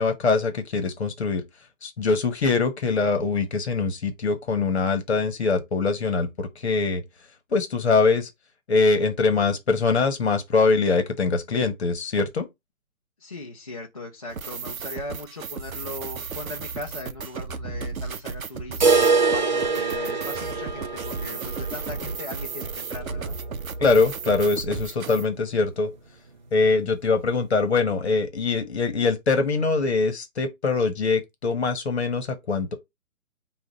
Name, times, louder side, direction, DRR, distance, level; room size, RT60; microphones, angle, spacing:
voice 1, 0.0-1.4 1.8-7.0 7.5-8.3 8.7-12.5 23.8-25.9 26.5-32.7, left 4 dB, 50° left, 1.2 m, -23 dB
voice 2, 13.2-23.4, left 2 dB, 25° left, 0.5 m, -38 dB
sound 1, 14.3-25.2, right 5 dB, 70° right, 0.7 m, -34 dB
sound 2, 18.8-24.6 24.9-25.0 25.4-25.5 26.0-26.1 26.9-27.0, right 4 dB, 35° right, 0.7 m, -25 dB
5.1 x 2.5 x 3.9 m
figure-of-eight pair, 140°, 43 cm